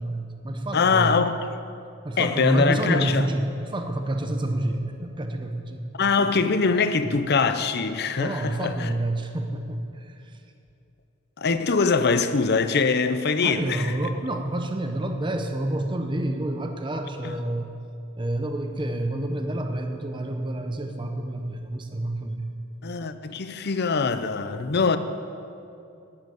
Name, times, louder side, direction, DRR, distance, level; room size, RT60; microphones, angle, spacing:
voice 1, 0.0-1.2 2.0-5.8 8.2-10.4 13.4-17.7 18.2-22.5, right 1 dB, 25° right, 0.7 m, -28 dB
voice 2, 0.7-1.6 2.2-3.3 6.0-8.9 11.4-14.1 17.2-17.3 22.8-25.0, left 4 dB, 50° left, 0.7 m, -23 dB
12.0 x 8.0 x 9.3 m
head